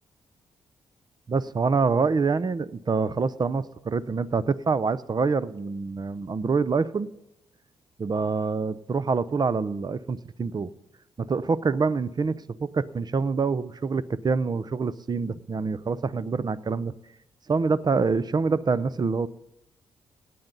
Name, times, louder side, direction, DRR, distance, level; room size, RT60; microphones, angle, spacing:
voice 1, 1.3-7.1 8.0-10.7 11.2-16.9 17.5-19.3, right 4 dB, 40° right, 16 dB, 0.7 m, -26 dB
17.5 x 9.3 x 4.0 m, 0.84 s
supercardioid pair, 50°, 11 cm